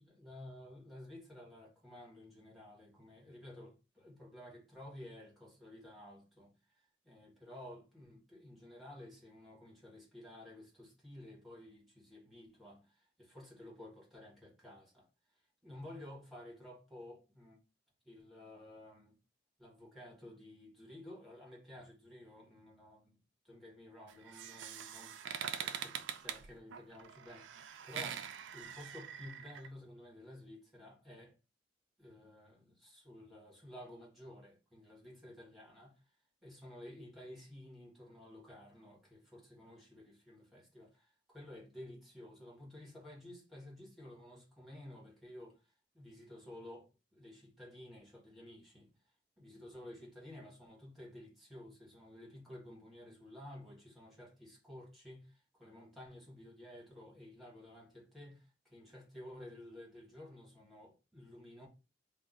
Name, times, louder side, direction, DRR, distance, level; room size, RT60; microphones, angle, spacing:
voice 1, 0.0-6.5 7.0-15.1 15.6-17.6 18.0-19.2 19.6-23.2 23.4-25.2 25.6-28.2 28.5-31.4 32.0-36.0 36.4-45.6 45.9-48.9 49.4-61.7, left 1 dB, ahead, 1.3 m, -53 dB
sound 1, 24.1-29.7, right 8 dB, 85° right, 0.4 m, -44 dB
2.6 x 2.2 x 3.9 m
head